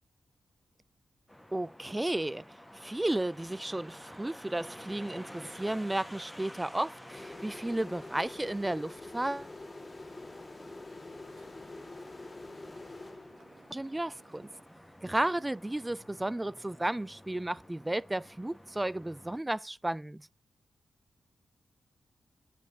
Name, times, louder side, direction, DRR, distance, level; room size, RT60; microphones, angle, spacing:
sound 1, 1.3-19.4, equal, 5° left, 1.3 m, -51 dB
voice 1, 1.5-2.4 2.7-9.5 13.7-14.5 15.0-20.3, right 1 dB, 15° right, 0.3 m, -33 dB
sound 2, 7.1-13.8, left 2 dB, 30° left, 2.2 m, -46 dB
Motorcycle, 7.3-14.5, right 6 dB, 80° right, 1.7 m, -66 dB
8.9 x 7.6 x 3.5 m
cardioid pair, 85°, 0 cm